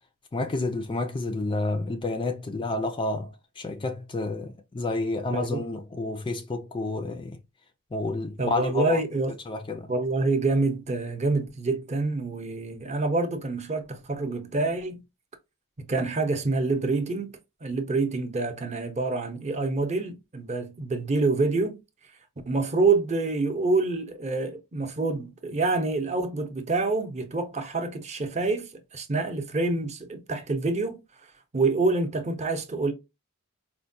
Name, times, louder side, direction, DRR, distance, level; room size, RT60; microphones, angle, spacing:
voice 1, 0.3-7.4 7.9-9.0 9.5-9.9, left 2 dB, 20° left, 0.4 m, -30 dB
voice 2, 5.3-5.6 8.4-9.3 9.9-15.0 15.8-17.3 17.6-21.8 22.5-31.0 31.5-32.9, right 3 dB, 30° right, 0.6 m, -27 dB
4.4 x 2.1 x 2.6 m
head